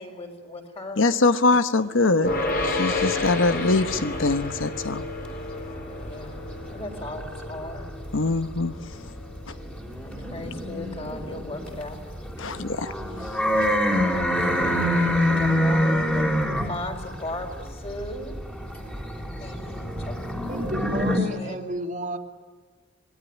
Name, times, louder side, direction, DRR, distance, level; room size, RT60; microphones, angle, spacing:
voice 1, 0.0-1.0 6.0-7.9 10.0-12.0 14.1-14.2 15.3-16.3 16.7-18.3 19.4-20.2 21.1-21.6, left 1 dB, 30° left, 3 dB, 4.6 m, -37 dB
voice 2, 1.0-2.3 2.6-5.0 8.1-8.7 12.4-12.9, left 3 dB, 90° left, 12 dB, 1.1 m, -22 dB
sound 1, 2.2-13.6, left 3 dB, 50° left, 4.9 m, -32 dB
sound 2, 2.3-5.2 5.5-8.1 8.5-21.2, equal, 5° left, 3.2 m, -26 dB
voice 3, 20.5-22.2, right 1 dB, 40° right, 4 dB, 2.4 m, -32 dB
27.0 x 21.0 x 9.3 m, 1.4 s
head